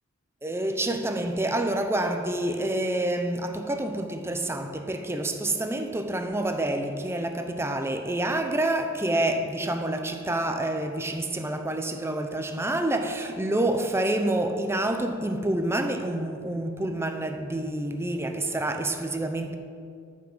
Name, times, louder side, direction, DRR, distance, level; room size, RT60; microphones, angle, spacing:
voice 1, 0.4-19.6, right 1 dB, 10° right, 0.7 m, -28 dB
13.5 x 6.0 x 5.6 m
head